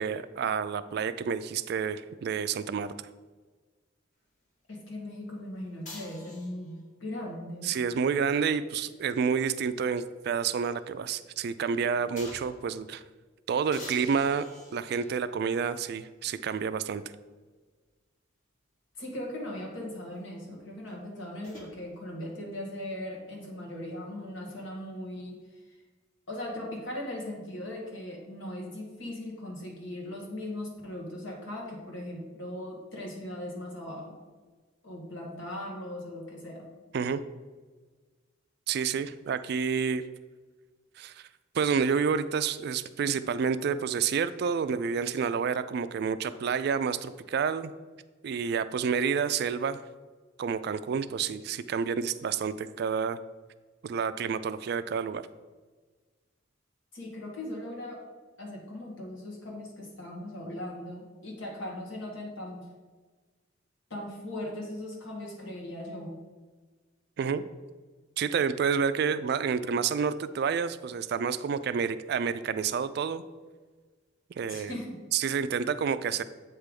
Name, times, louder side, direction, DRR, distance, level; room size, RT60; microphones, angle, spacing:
voice 1, 0.0-2.9 7.6-13.0 13.5-17.0 36.9-37.2 38.7-40.0 41.0-41.2 41.5-47.7 48.2-49.8 50.4-53.2 53.8-55.2 67.2-67.4 68.2-73.2 74.4-74.8 75.1-76.2, right 6 dB, 55° right, 13 dB, 0.3 m, -29 dB
voice 2, 4.7-7.8 19.0-25.4 26.3-34.2 34.8-36.6 56.9-58.0 58.4-62.7 63.9-66.2 74.5-75.0 75.5-75.6, left 1 dB, 85° left, -1 dB, 1.8 m, -39 dB
sound 1, 5.8-6.8 8.6-10.1 10.5-10.6 12.2-12.7 13.7-15.3 16.2-16.3 20.9-21.7, left 1 dB, 40° left, 1.5 m, -47 dB
8.1 x 3.4 x 5.2 m, 1.4 s
head